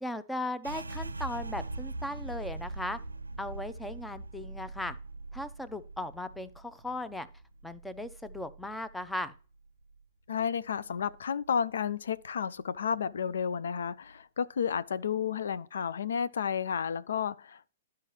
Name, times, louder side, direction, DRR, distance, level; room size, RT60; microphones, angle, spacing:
voice 1, 0.0-3.0 3.4-5.0 5.3-7.3 7.6-9.3, left 1 dB, 5° left, 0.5 m, -37 dB
sound 1, 0.6-10.0 10.3-11.6 11.9-12.4 12.8-13.4, right 2 dB, 85° right, 0.5 m, -43 dB
voice 2, 10.3-17.7, left 7 dB, 65° left, 0.3 m, -32 dB
12.0 x 4.7 x 3.0 m
figure-of-eight pair, 110°, 0 cm